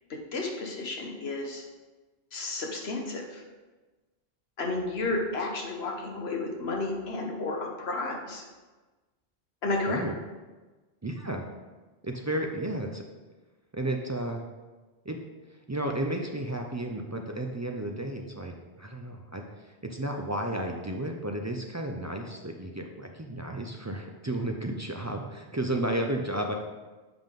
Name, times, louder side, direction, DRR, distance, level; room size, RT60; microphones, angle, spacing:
voice 1, 0.3-1.6 2.3-3.4 4.6-8.5 9.6-10.0, left 2 dB, 70° left, 1 dB, 1.3 m, -32 dB
voice 2, 11.0-11.4 12.0-13.0 13.7-14.4 15.0-15.2 15.7-26.5, right 1 dB, 25° right, 2 dB, 0.3 m, -33 dB
7.8 x 5.2 x 3.7 m, 1.2 s
omnidirectional pair, 1.1 m